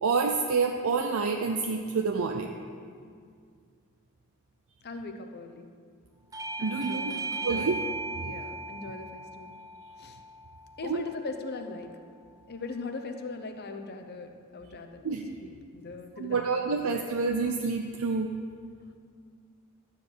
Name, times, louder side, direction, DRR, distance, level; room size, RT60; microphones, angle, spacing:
voice 1, 0.0-2.5 6.6-7.2 7.4-7.8 8.2-8.3 10.8-11.0 15.0-15.4 16.2-18.3, right 4 dB, 70° right, 4 dB, 0.5 m, -28 dB
voice 2, 4.8-5.7 6.6-7.8 8.2-9.6 10.0-10.2 10.8-12.0 12.5-15.1 15.4-16.8, left 3 dB, 50° left, 6 dB, 0.8 m, -40 dB
Bell / Doorbell, 6.3-11.5, right 3 dB, 15° right, 0.4 m, -37 dB
12.0 x 4.9 x 7.9 m, 2.2 s
head